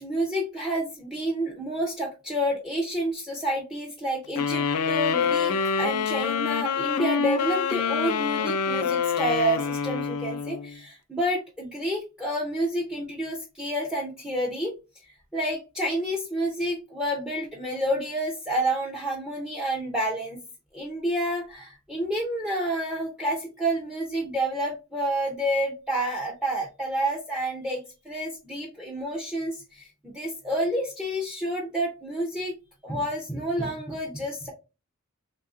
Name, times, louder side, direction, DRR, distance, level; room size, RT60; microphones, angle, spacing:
voice 1, 0.0-14.8 15.3-20.4 20.7-32.5 32.8-34.5, right 1 dB, 5° right, 0 dB, 0.5 m, -29 dB
sound 1, 4.4-10.8, left 6 dB, 80° left, 0.4 m, -26 dB
3.3 x 2.6 x 2.4 m, 0.28 s
head